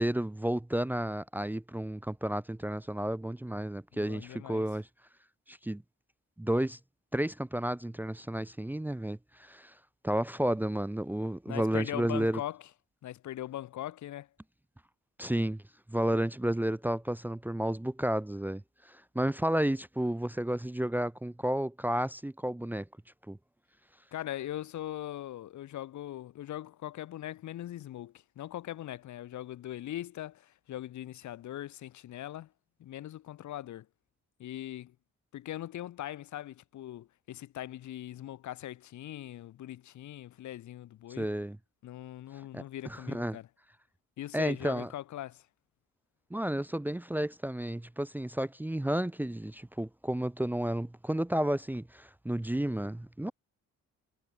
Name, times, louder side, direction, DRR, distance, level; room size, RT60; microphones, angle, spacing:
voice 1, 0.0-4.9 5.5-5.8 6.4-6.8 7.1-9.7 10.0-12.4 15.2-15.6 15.9-22.9 23.3-23.4 41.2-41.6 42.5-43.4 44.3-44.9 46.3-53.3, right 1 dB, 5° right, 0.8 m, -32 dB
voice 2, 3.9-4.6 11.5-12.7 13.0-14.3 24.1-32.5 32.8-33.9 34.4-34.9 35.3-41.3 41.8-43.5 44.2-45.5, left 13 dB, 70° left, 1.6 m, -41 dB
cardioid pair, 90°, 30 cm